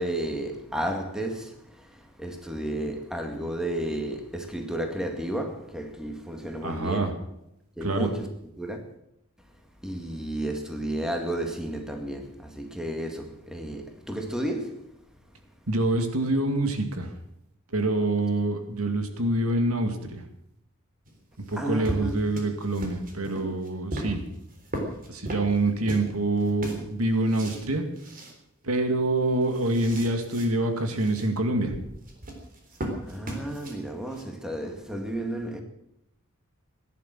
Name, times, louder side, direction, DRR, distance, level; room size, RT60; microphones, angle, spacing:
voice 1, 0.0-7.1 7.8-8.3 8.6-8.8 9.8-14.8 21.6-22.2 33.1-35.6, right 1 dB, 5° right, 2.1 m, -32 dB
voice 2, 6.6-7.1 7.8-8.1 15.7-17.1 17.7-20.2 21.5-24.2 25.1-27.8 28.6-31.8, right 2 dB, 85° right, 2.4 m, -26 dB
sound 1, 21.1-26.1 26.4-27.7 28.0-28.3 28.7-28.8 29.2-30.5 30.8-31.3 32.0-34.2, right 1 dB, 40° right, 3.7 m, -37 dB
17.0 x 11.0 x 7.7 m
head